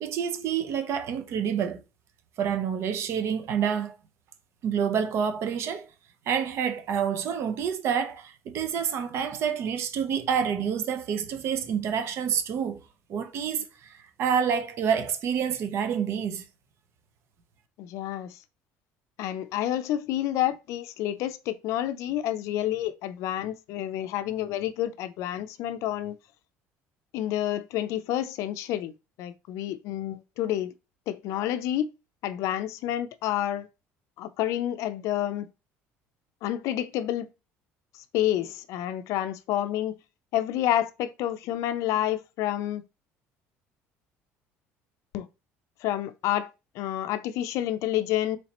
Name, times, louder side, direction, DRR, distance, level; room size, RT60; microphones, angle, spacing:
voice 1, 0.0-1.8 2.4-4.0 4.6-5.9 6.3-12.8 13.1-13.9 14.2-16.4, right 7 dB, 55° right, 0.7 m, -28 dB
voice 2, 17.8-18.4 19.2-26.2 27.1-28.9 29.2-30.7 31.1-31.9 32.2-33.7 34.2-35.5 36.4-37.3 37.9-40.0 40.3-42.8 45.1-45.3 45.8-46.5 46.7-48.4, left 12 dB, 70° left, 0.4 m, -29 dB
4.1 x 3.2 x 2.9 m
cardioid pair, 125°, 5 cm